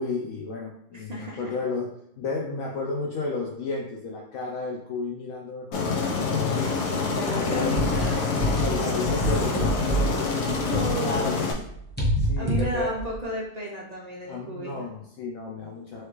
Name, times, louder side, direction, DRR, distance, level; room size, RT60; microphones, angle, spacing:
voice 1, 0.0-6.8 7.3-7.7 8.5-10.3 11.0-11.6 12.2-12.9 14.3-16.1, left 3 dB, 70° left, -1 dB, 0.9 m, -32 dB
voice 2, 0.9-1.5 7.1-8.4 10.5-11.4 12.4-14.8, right 1 dB, 75° right, -2 dB, 0.3 m, -33 dB
Aircraft, 5.7-11.5, left 4 dB, 90° left, 1.4 m, -26 dB
sound 1, 7.7-11.2 11.5-13.2, right 1 dB, 10° left, 0.8 m, -27 dB
4.6 x 3.3 x 3.1 m, 0.75 s
omnidirectional pair, 1.7 m